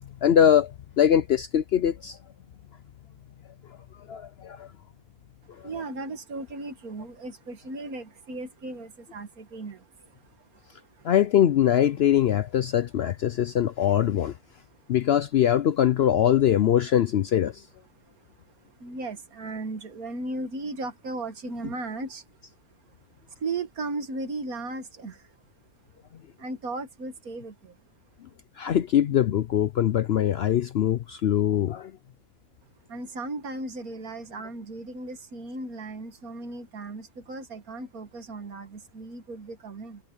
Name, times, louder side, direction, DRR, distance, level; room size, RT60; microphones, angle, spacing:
voice 1, 0.2-0.7 1.0-2.2 4.1-4.7 11.0-14.3 14.9-17.6 28.6-31.9, left 10 dB, 65° left, 0.6 m, -22 dB
voice 2, 5.6-9.8 18.8-22.2 23.4-25.1 26.4-27.5 32.9-40.0, right 2 dB, 75° right, 2.1 m, -36 dB
omnidirectional pair, 1.6 m